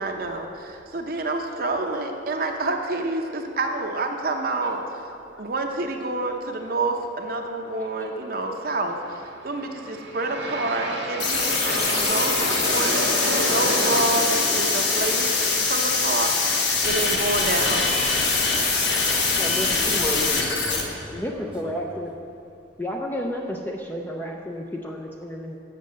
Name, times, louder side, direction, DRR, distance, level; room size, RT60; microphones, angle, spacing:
voice 1, 0.0-5.0 5.4-15.3 15.7-17.9, right 2 dB, 50° right, 3 dB, 0.7 m, -28 dB
Aircraft, 9.3-20.4, right 1 dB, 85° right, 1.5 m, -32 dB
sound 1, 11.2-20.8, left 4 dB, 65° left, 1.2 m, -23 dB
voice 2, 18.3-22.0, equal, 5° right, -2 dB, 1.0 m, -36 dB
voice 3, 19.4-19.7 21.1-22.2 22.8-25.6, equal, 10° left, 0 dB, 0.5 m, -31 dB
7.6 x 6.4 x 7.4 m, 2.5 s
head